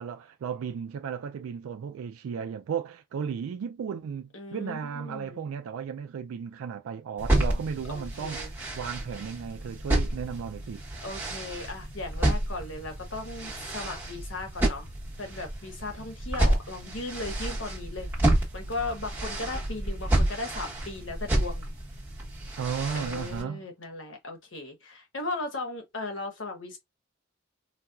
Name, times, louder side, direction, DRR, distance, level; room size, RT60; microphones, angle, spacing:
voice 1, 0.0-8.5 8.7-10.8 22.6-23.7, right 7 dB, 85° right, 0.3 m, -35 dB
voice 2, 4.3-5.5 7.9-8.5 11.0-14.9 15.2-18.1 18.5-21.6 22.9-26.8, left 2 dB, 65° left, 1.1 m, -37 dB
sound 1, 7.2-23.4, right 1 dB, 10° right, 1.0 m, -30 dB
4.2 x 2.2 x 2.3 m
head